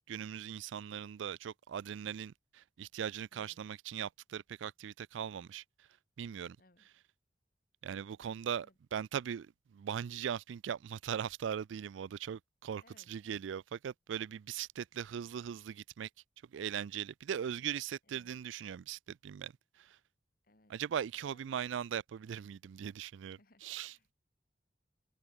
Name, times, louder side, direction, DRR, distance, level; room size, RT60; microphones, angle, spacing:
voice 1, 0.1-5.6 6.2-6.6 7.8-16.1 16.5-19.5 19.8-20.0 20.7-23.9, right 8 dB, 85° right, 0.4 m, -40 dB
voice 2, 6.6-6.9 8.6-8.8 12.8-13.1 18.0-18.4 20.4-20.7 21.2-21.7 23.3-24.1, left 2 dB, 50° left, 2.7 m, -66 dB
head